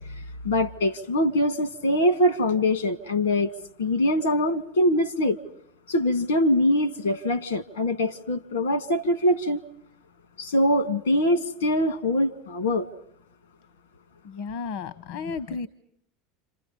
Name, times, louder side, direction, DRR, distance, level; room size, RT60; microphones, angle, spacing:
voice 1, 0.0-3.5 3.8-5.4 5.9-9.6 10.4-12.9, left 1 dB, 85° left, 13 dB, 1.9 m, -23 dB
voice 2, 14.2-15.7, left 5 dB, 70° left, 15 dB, 0.9 m, -33 dB
30.0 x 27.5 x 5.4 m, 0.68 s
hypercardioid pair, 80°, 0 cm